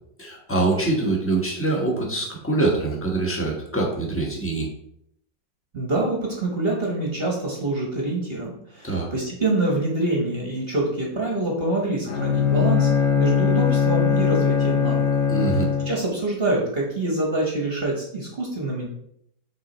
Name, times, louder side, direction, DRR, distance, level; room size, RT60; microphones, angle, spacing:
voice 1, 0.2-4.7 8.8-9.1 15.3-15.6, right 2 dB, 10° left, -2 dB, 1.1 m, -24 dB
voice 2, 5.7-15.1 15.5-18.9, right 2 dB, 40° right, -1 dB, 1.2 m, -26 dB
Bowed string instrument, 12.1-16.2, left 7 dB, 75° left, 1.3 m, -21 dB
6.2 x 3.9 x 4.2 m, 0.72 s
omnidirectional pair, 1.9 m